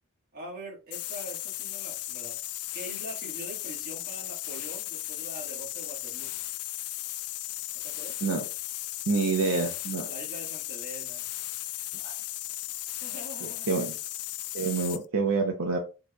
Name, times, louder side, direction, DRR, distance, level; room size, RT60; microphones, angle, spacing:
voice 1, 0.3-2.4 2.7-6.3 7.8-8.1 9.4-9.7 10.1-11.2 13.0-13.7, right 1 dB, 45° right, 1.4 m, -43 dB
sound 1, 0.9-15.1, left 15 dB, 90° left, 0.3 m, -36 dB
voice 2, 9.1-10.1 11.9-12.1 13.7-14.0 14.5-15.8, right 4 dB, 75° right, 0.6 m, -27 dB
4.4 x 3.0 x 2.2 m
head